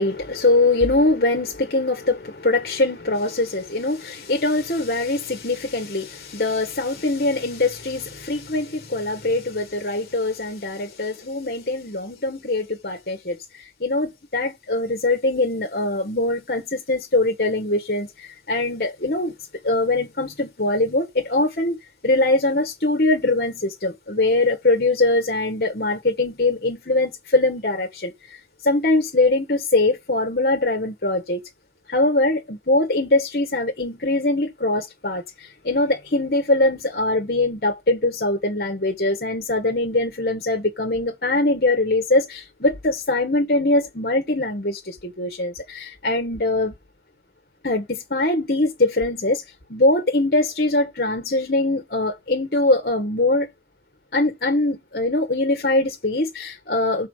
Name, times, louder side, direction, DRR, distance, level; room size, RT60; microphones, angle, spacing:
voice 1, 0.0-19.4 19.6-21.8 22.0-28.1 28.6-31.4 31.9-46.7 47.6-49.4 49.7-53.5 54.1-57.1, left 2 dB, 60° left, 1.4 m, -22 dB
7.2 x 4.2 x 6.6 m
head